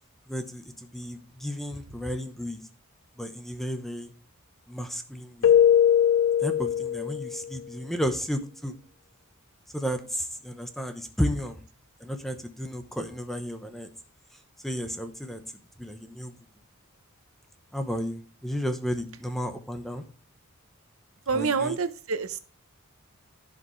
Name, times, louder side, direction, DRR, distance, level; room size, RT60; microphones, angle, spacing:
voice 1, 0.3-2.6 3.2-4.1 4.7-5.5 6.4-8.7 9.7-11.6 12.0-13.9 14.6-15.4 15.8-16.3 17.7-20.0 21.3-21.8, equal, ahead, 7 dB, 0.8 m, -33 dB
Keyboard (musical), 5.4-7.4, left 9 dB, 70° left, 0.3 m, -21 dB
voice 2, 21.3-22.5, right 5 dB, 70° right, 11 dB, 0.8 m, -27 dB
15.0 x 5.1 x 3.2 m, 0.37 s
head